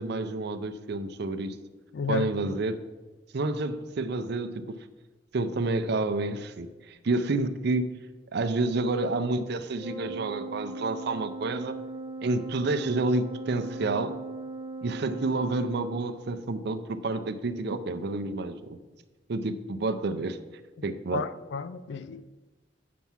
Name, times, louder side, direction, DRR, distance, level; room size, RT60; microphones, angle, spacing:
voice 1, 0.0-1.6 2.1-2.8 3.3-4.8 5.3-7.9 8.3-11.8 12.2-14.2 14.8-18.8 19.3-20.4 20.8-21.2, right 2 dB, 60° right, 0.5 m, -29 dB
voice 2, 1.9-2.3 21.1-22.3, left 5 dB, 65° left, 0.4 m, -32 dB
Organ, 9.8-16.3, right 2 dB, 20° left, 2.5 m, -39 dB
8.4 x 4.6 x 5.7 m
head